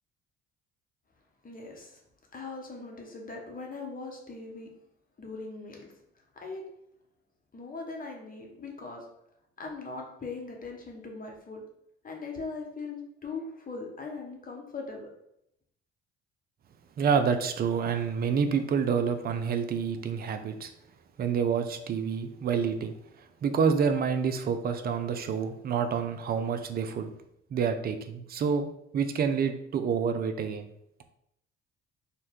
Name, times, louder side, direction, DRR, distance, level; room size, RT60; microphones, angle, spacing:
voice 1, 1.4-2.0 2.3-4.7 5.2-5.9 6.3-6.6 7.5-9.1 9.6-11.7 12.0-15.1, left 3 dB, 30° left, 0 dB, 0.9 m, -40 dB
voice 2, 17.0-20.7 21.2-22.9 23.4-27.1 27.5-28.7 28.9-30.7, right 6 dB, 35° right, 8 dB, 0.4 m, -28 dB
2.7 x 2.2 x 3.5 m, 0.77 s
hypercardioid pair, 55°, 30 cm